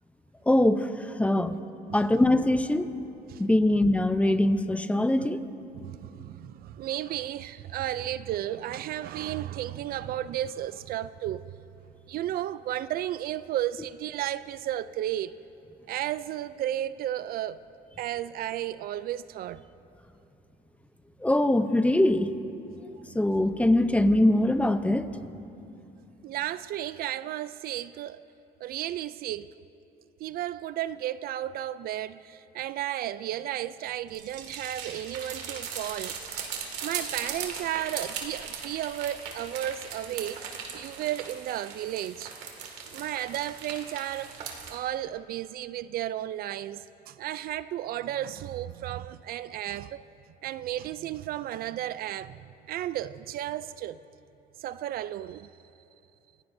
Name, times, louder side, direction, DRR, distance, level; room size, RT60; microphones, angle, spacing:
voice 1, 0.5-1.6 1.9-2.9 3.4-5.4 21.2-22.3 23.1-25.1, left 1 dB, 10° left, 0.7 m, -23 dB
voice 2, 5.7-11.5 12.1-15.4 15.9-17.6 18.0-19.6 26.2-28.2 28.6-29.5 30.2-36.5 36.8-40.4 40.7-42.3 42.9-50.0 50.4-52.4 52.7-54.0 54.6-55.5, right 12 dB, 65° right, 0.4 m, -33 dB
sound 1, 34.1-44.7, right 6 dB, 85° right, 2.2 m, -39 dB
26.0 x 17.0 x 2.7 m
cardioid pair, 110°, 17 cm